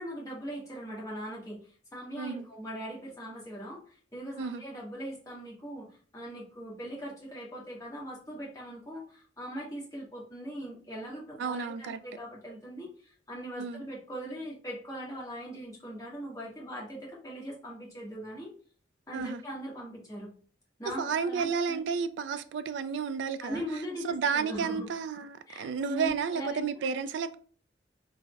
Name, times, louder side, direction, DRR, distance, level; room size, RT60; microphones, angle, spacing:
voice 1, 0.0-18.5 19.1-20.3 20.8-21.8 23.4-24.9 25.5-26.7, equal, 20° left, 1.2 m, -40 dB
voice 2, 11.4-12.0 13.6-13.9 19.1-19.4 21.0-23.6 24.0-27.3, right 6 dB, 75° right, 0.3 m, -32 dB
3.5 x 2.0 x 3.3 m
head